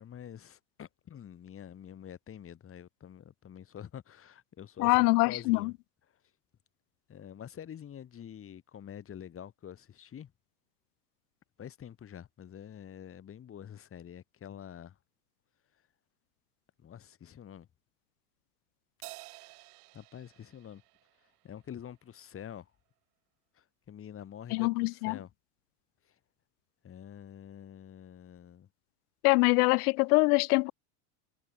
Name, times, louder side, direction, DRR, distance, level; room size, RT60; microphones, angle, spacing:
voice 1, 0.0-5.0 5.2-5.7 7.1-10.3 11.6-15.0 16.8-17.7 19.9-20.8 21.4-22.7 23.5-25.3 26.1-26.2 26.8-28.7, left 9 dB, 25° left, 3.3 m, -47 dB
voice 2, 4.8-5.7 24.5-25.2 29.2-30.7, left 25 dB, 65° left, 0.7 m, -24 dB
Crash cymbal, 19.0-21.7, right 25 dB, 65° right, 4.0 m, -51 dB
supercardioid pair, 125°, 49 cm